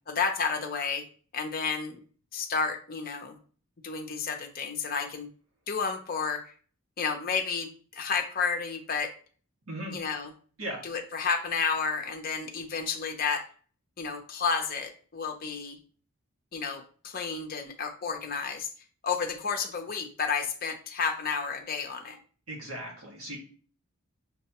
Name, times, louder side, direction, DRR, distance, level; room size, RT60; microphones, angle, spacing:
voice 1, 0.1-1.0 1.3-2.0 2.3-3.4 3.8-5.3 5.7-6.5 7.0-9.1 9.9-10.3 10.8-13.5 14.0-15.8 16.5-18.7 19.0-22.2, left 5 dB, 45° left, 5 dB, 0.6 m, -31 dB
voice 2, 22.5-23.4, right 1 dB, 85° right, -2 dB, 1.7 m, -37 dB
6.4 x 2.2 x 2.9 m, 0.42 s
head